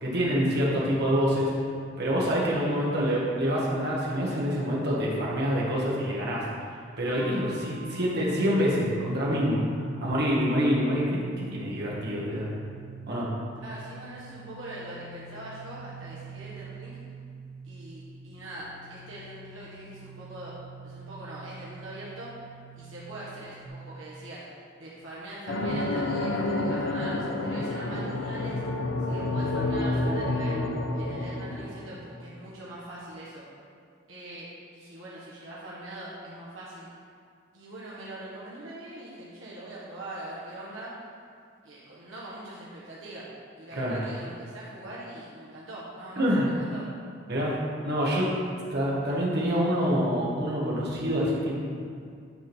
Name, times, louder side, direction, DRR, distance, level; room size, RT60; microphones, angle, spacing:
voice 1, 0.0-1.5 2.0-6.4 7.0-9.6 10.0-12.5 13.1-13.3 43.7-44.0 46.2-46.5 47.3-47.6 47.8-48.3 48.7-51.6, equal, 55° right, -5 dB, 1.8 m, -26 dB
sound 1, 7.2-23.7, right 3 dB, 30° left, 1.7 m, -45 dB
voice 2, 13.5-17.0 17.6-20.6 20.8-22.3 22.7-24.4 24.8-28.6 29.1-30.6 30.9-33.4 34.1-36.9 37.5-40.9 41.6-46.8, right 1 dB, 75° right, -7 dB, 1.5 m, -42 dB
sound 2, 25.5-32.2, left 2 dB, 75° left, 0.8 m, -29 dB
9.9 x 3.8 x 6.3 m, 2.3 s
head